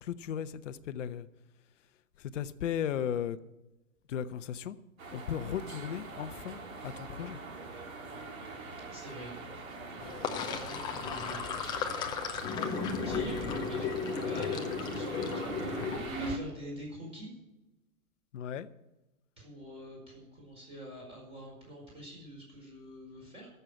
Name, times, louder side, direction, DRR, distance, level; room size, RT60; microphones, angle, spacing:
voice 1, 0.0-1.3 2.3-3.4 4.1-4.8 5.1-6.6 6.8-7.4 18.3-18.7, left 9 dB, 60° left, 0.9 m, -35 dB
sound 1, 5.0-16.4, right 3 dB, 70° right, 3.4 m, -42 dB
voice 2, 8.9-9.6 9.9-11.4 12.3-17.3 19.4-23.5, equal, 15° right, 4.8 m, -46 dB
Sink (filling or washing), 10.0-16.3, left 6 dB, 10° left, 0.6 m, -35 dB
13.5 x 6.8 x 8.6 m
hypercardioid pair, 140°, 42 cm